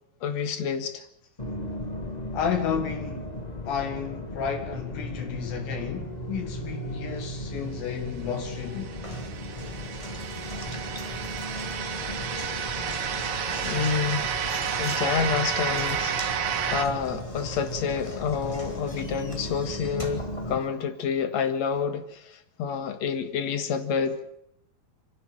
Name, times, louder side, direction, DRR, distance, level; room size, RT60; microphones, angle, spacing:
voice 1, 0.2-1.0 9.6-9.7 13.7-14.3 14.8-16.2 16.7-24.2, left 6 dB, 55° left, 2.4 m, -28 dB
sound 1, 1.4-20.6, equal, 35° left, 0.6 m, -36 dB
voice 2, 2.3-3.4 3.7-8.9, left 7 dB, 75° left, 3.5 m, -32 dB
sound 2, 8.4-16.8, right 8 dB, 65° right, 3.3 m, -31 dB
Knock, 9.0-21.2, left 1 dB, 10° left, 2.5 m, -43 dB
29.0 x 11.5 x 8.9 m
omnidirectional pair, 4.4 m